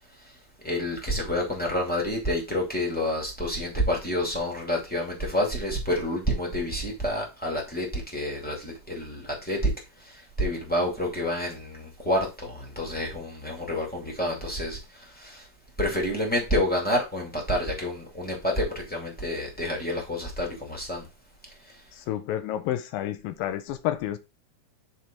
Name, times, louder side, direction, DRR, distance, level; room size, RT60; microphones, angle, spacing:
voice 1, 0.6-9.7 10.0-15.4 15.8-21.1, left 1 dB, 5° left, 1.3 m, -28 dB
voice 2, 21.9-24.2, left 12 dB, 85° left, 2.4 m, -30 dB
9.2 x 3.4 x 4.4 m
omnidirectional pair, 4.1 m